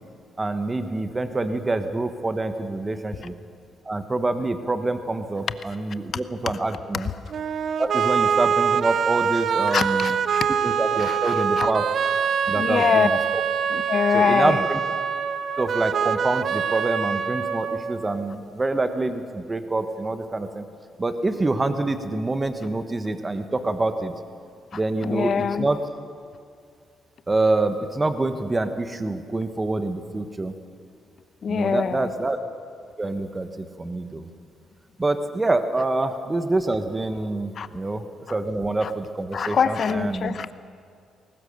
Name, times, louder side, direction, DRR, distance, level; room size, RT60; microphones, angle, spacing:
voice 1, 0.4-3.3 3.8-7.1 7.8-10.2 10.6-11.8 12.5-13.1 14.1-14.8 15.6-20.6 21.0-24.1 24.7-25.8 27.3-30.5 31.5-32.4 33.0-34.3 35.0-38.0 38.3-40.4, right 2 dB, 20° right, 9 dB, 1.3 m, -26 dB
sound 1, 7.3-18.3, right 7 dB, 55° right, 0.8 m, -24 dB
voice 2, 9.7-10.5 11.0-11.7 12.5-13.1 13.7-14.7 24.7-25.7 31.4-32.1 37.5-37.7 38.8-38.9 39.3-40.5, left 6 dB, 50° left, 13 dB, 0.9 m, -24 dB
22.0 x 18.5 x 6.6 m, 2.3 s
cardioid pair, 90°, 0 cm